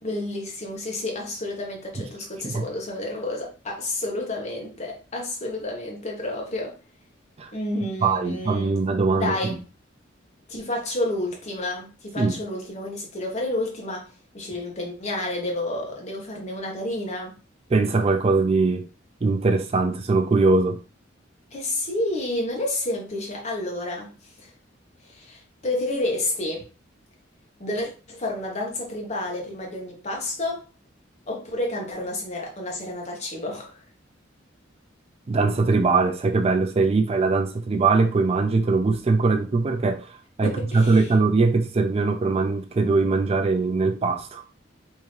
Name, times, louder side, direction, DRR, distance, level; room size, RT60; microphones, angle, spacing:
voice 1, 0.0-6.8 7.5-8.7 9.1-9.6 10.5-14.1 14.3-17.3 21.5-24.1 24.4-24.5 25.0-26.7 27.6-30.6 31.3-33.8 40.4-41.1, left 1 dB, 35° left, 1.0 m, -30 dB
voice 2, 8.0-9.6 12.2-12.3 17.7-18.9 19.2-20.8 35.3-44.4, right 3 dB, 30° right, 0.4 m, -21 dB
3.6 x 2.7 x 3.1 m
head